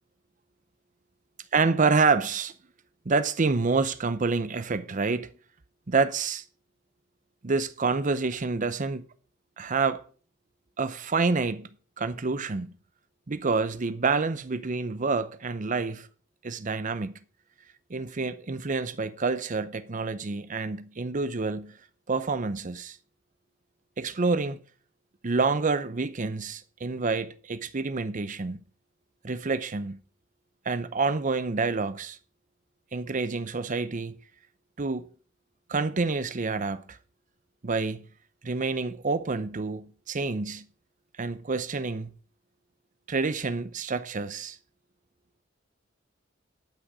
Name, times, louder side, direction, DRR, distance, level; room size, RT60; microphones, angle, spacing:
voice 1, 1.5-2.5 3.1-5.3 5.9-6.4 7.4-9.0 9.6-10.0 10.8-11.7 12.0-12.7 13.3-16.1 16.4-17.1 17.9-21.7 22.1-23.0 24.0-24.6 25.2-28.6 29.2-30.0 30.7-32.2 32.9-34.2 34.8-35.1 35.7-37.0 37.6-38.0 38.4-40.6 41.2-42.1 43.1-44.6, right 4 dB, 40° right, 0.7 m, -28 dB
11.5 x 6.4 x 6.1 m
head